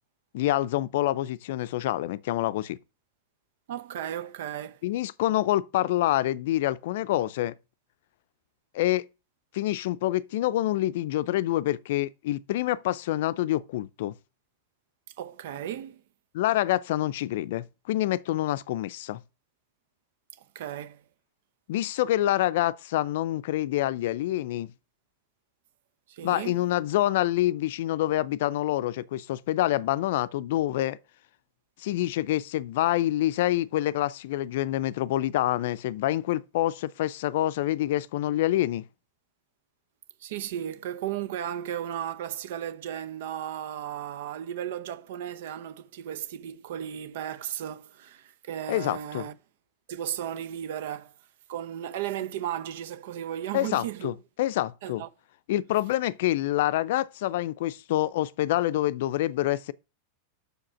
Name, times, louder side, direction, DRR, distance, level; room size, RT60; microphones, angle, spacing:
voice 1, 0.3-2.8 4.8-7.5 8.7-9.1 9.5-14.1 16.3-19.2 21.7-24.7 26.2-31.0 31.8-38.8 48.7-49.3 53.5-55.0 55.5-59.7, left 14 dB, 65° left, 0.4 m, -27 dB
voice 2, 3.7-4.8 15.2-16.0 20.4-21.0 26.1-26.6 40.2-49.4 49.9-51.1 51.5-54.1 54.8-55.1, right 10 dB, 70° right, 0.7 m, -35 dB
6.5 x 5.0 x 6.2 m
hypercardioid pair, 100°, 0 cm